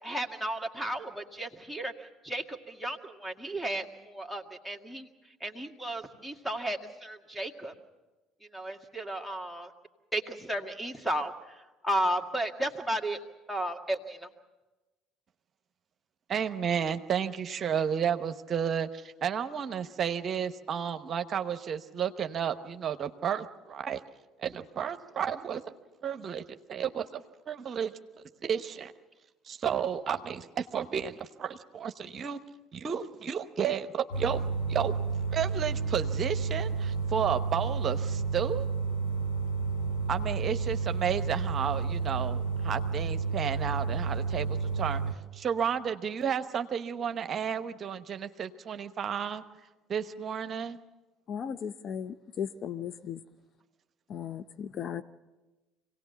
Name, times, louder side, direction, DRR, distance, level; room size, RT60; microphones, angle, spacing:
voice 1, 0.0-5.1 5.4-7.7 8.5-9.7 10.1-13.2 13.5-14.3, right 1 dB, ahead, 5 dB, 2.1 m, -34 dB
voice 2, 16.3-24.0 24.4-25.6 26.0-26.4 26.7-27.9 28.4-28.9 29.4-32.4 32.7-34.4 34.7-35.0 35.3-38.7 40.1-45.0 45.3-49.4 49.9-50.8, right 8 dB, 45° right, 9 dB, 0.9 m, -32 dB
sound 1, 34.1-45.1, right 5 dB, 85° left, 2.3 m, -31 dB
voice 3, 51.3-53.2 54.1-55.0, left 8 dB, 50° left, 11 dB, 0.7 m, -36 dB
25.5 x 18.0 x 7.1 m, 1.1 s
hypercardioid pair, 65°, 0 cm